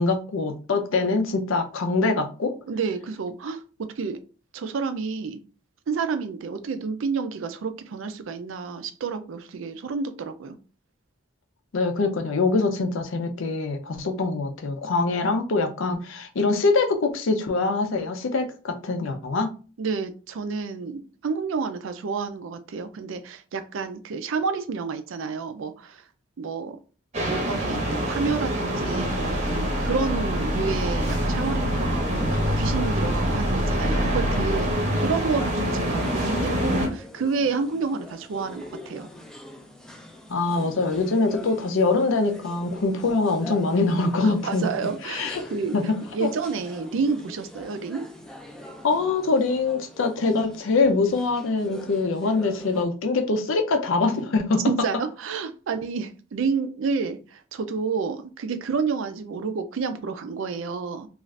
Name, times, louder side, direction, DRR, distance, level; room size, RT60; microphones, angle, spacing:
voice 1, 0.0-2.6 11.7-19.5 40.3-44.6 45.0-45.4 45.7-46.3 48.8-54.6, left 3 dB, 70° left, 0.5 m, -24 dB
voice 2, 2.7-3.6 4.0-4.2 4.5-5.4 5.9-10.6 19.8-26.0 26.4-26.8 27.3-39.1 44.2-45.8 46.1-48.1 54.7-61.1, right 5 dB, 70° right, 0.4 m, -29 dB
sound 1, 27.1-36.9, equal, 30° right, 0.7 m, -26 dB
sound 2, 28.8-34.7, equal, 90° left, 1.1 m, -30 dB
sound 3, 35.4-52.8, left 1 dB, 5° left, 0.3 m, -43 dB
2.5 x 2.4 x 3.2 m
head